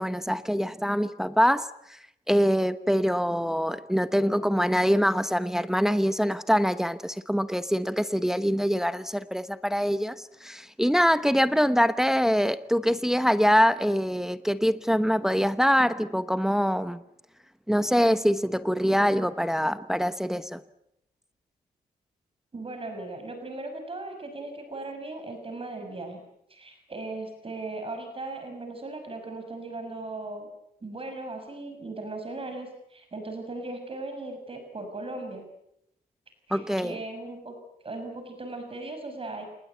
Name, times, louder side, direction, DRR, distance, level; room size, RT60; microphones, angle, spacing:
voice 1, 0.0-2.0 2.3-17.0 17.7-20.6 36.5-37.0, equal, 5° right, 12 dB, 1.0 m, -24 dB
voice 2, 22.5-26.2 26.5-30.5 30.8-35.4 36.5-37.6 37.8-39.5, right 2 dB, 35° right, 6 dB, 6.0 m, -38 dB
27.5 x 20.0 x 8.2 m, 0.80 s
cardioid pair, 95°, 16 cm